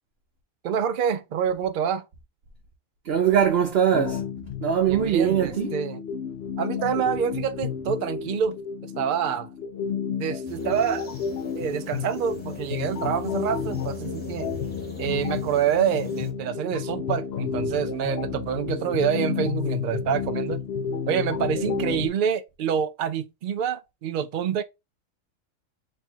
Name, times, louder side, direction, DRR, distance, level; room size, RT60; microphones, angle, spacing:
voice 1, 0.6-2.0 4.9-6.0 6.6-8.6 8.8-9.5 10.1-11.1 11.5-14.5 15.0-20.6 21.1-24.6, right 8 dB, 70° right, 0.4 m, -27 dB
voice 2, 3.1-4.2 4.6-5.7, right 8 dB, 55° right, 0.9 m, -21 dB
sound 1, 3.9-22.1, left 7 dB, 65° left, 0.7 m, -31 dB
sound 2, 10.4-16.3, equal, 10° left, 0.9 m, -42 dB
3.4 x 2.4 x 4.4 m
omnidirectional pair, 1.4 m